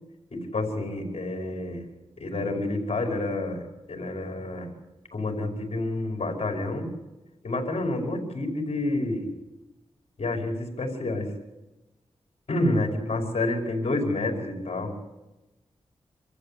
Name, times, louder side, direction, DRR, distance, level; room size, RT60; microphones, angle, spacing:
voice 1, 0.3-1.9 2.2-3.6 3.9-4.7 5.1-6.9 7.4-9.3 10.2-11.3 12.5-14.9, left 2 dB, 60° left, 2 dB, 5.4 m, -29 dB
26.0 x 14.5 x 8.6 m, 1.0 s
wide cardioid pair, 105°, 12 cm